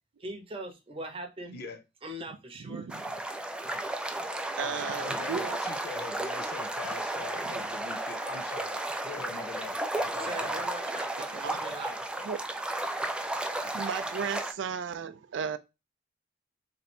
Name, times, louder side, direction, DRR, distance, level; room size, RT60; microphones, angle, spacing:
voice 1, 0.2-1.5 2.0-2.9 10.2-12.1, right 1 dB, 30° right, 0.9 m, -40 dB
voice 2, 1.5-1.8 4.6-10.6, left 4 dB, 55° left, 0.5 m, -43 dB
voice 3, 2.7-3.1 4.2-4.3 4.6-5.6 11.3-11.6 12.2-12.4 13.4-15.6, right 6 dB, 70° right, 0.4 m, -35 dB
sound 1, 2.9-14.5, right 1 dB, 5° right, 0.4 m, -33 dB
3.1 x 2.6 x 4.2 m
head